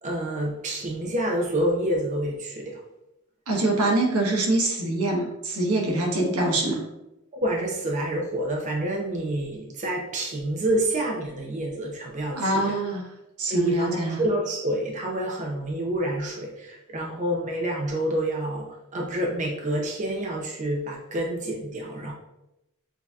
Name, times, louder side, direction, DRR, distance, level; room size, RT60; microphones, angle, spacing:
voice 1, 0.0-2.8 7.3-12.8 13.5-22.1, right 1 dB, 35° right, 0 dB, 0.5 m, -28 dB
voice 2, 3.5-6.8 12.3-13.0 13.4-14.2, right 2 dB, 80° right, -1 dB, 1.1 m, -24 dB
6.7 x 2.7 x 2.3 m, 0.90 s
head